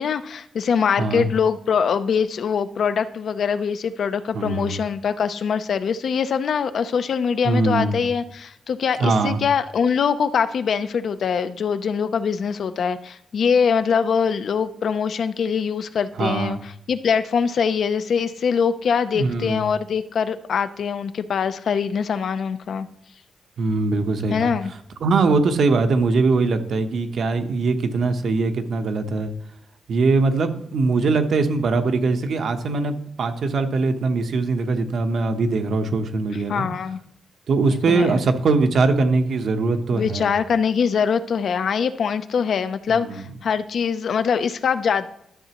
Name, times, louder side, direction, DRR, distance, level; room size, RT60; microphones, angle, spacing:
voice 1, 0.0-22.9 24.3-24.7 36.5-37.0 37.9-38.2 39.9-45.1, left 6 dB, 65° left, 11 dB, 0.6 m, -23 dB
voice 2, 4.3-4.8 7.4-8.0 9.0-9.4 16.2-16.6 19.1-19.6 23.6-24.5 25.0-29.3 29.9-36.7 37.5-40.3 42.9-43.2, right 3 dB, 65° right, 7 dB, 1.0 m, -21 dB
12.5 x 6.7 x 3.0 m, 0.75 s
cardioid pair, 95°, 0 cm